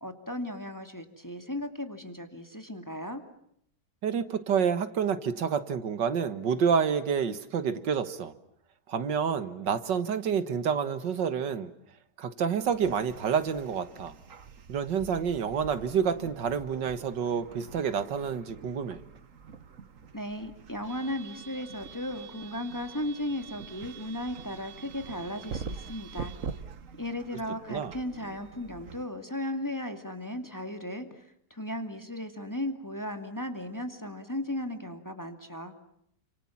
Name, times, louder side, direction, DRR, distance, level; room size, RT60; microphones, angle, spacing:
voice 1, 0.0-3.2 20.1-26.3 27.0-31.3 31.5-35.7, left 1 dB, 10° left, 7 dB, 2.3 m, -36 dB
voice 2, 4.0-8.3 8.9-11.7 12.2-14.1 14.7-19.0 27.7-27.9, right 7 dB, 90° right, 12 dB, 2.2 m, -28 dB
sound 1, 12.6-29.0, right 6 dB, 50° right, 1.6 m, -45 dB
29.5 x 26.5 x 7.3 m, 0.72 s
omnidirectional pair, 1.9 m